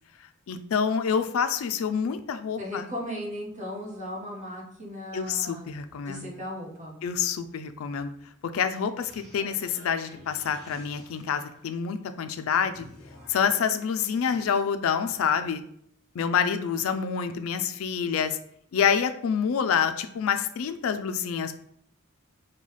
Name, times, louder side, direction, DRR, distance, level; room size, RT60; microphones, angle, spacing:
voice 1, 0.5-2.9 5.1-6.3 7.0-8.1 8.5-12.8 13.3-15.6 16.2-18.4 18.7-21.5, left 7 dB, 75° left, 9 dB, 0.4 m, -27 dB
voice 2, 2.6-5.7 6.0-7.0, equal, 35° right, -3 dB, 1.3 m, -36 dB
sound 1, 9.0-12.0 12.7-14.6, left 1 dB, ahead, 1.6 m, -50 dB
5.4 x 2.2 x 3.1 m, 0.69 s
head